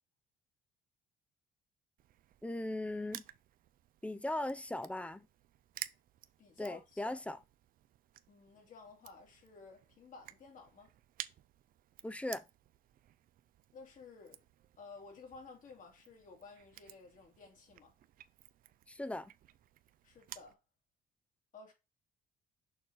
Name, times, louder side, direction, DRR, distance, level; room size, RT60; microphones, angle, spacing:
Crushing, 2.0-20.5, right 12 dB, 55° right, 0.5 m, -54 dB
voice 1, 2.4-3.2 4.0-5.3 6.6-7.4 12.0-12.4 18.9-19.3, left 1 dB, 5° left, 0.6 m, -38 dB
voice 2, 6.4-7.2 8.3-10.9 13.7-14.4 14.8-17.9 20.0-20.6 21.5-21.7, left 4 dB, 50° left, 2.8 m, -54 dB
6.6 x 4.6 x 4.0 m
cardioid pair, 110°, 17 cm